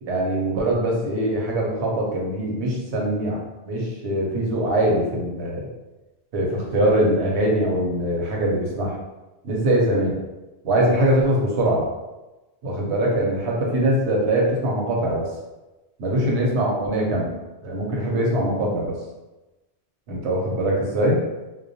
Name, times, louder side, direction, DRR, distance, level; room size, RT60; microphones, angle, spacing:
voice 1, 0.0-5.7 6.3-8.9 9.4-10.2 10.6-11.9 12.6-15.3 16.0-17.3 17.6-19.0 20.1-21.2, right 1 dB, 85° right, -2 dB, 0.9 m, -22 dB
2.2 x 2.1 x 2.6 m, 1.1 s
omnidirectional pair, 1.1 m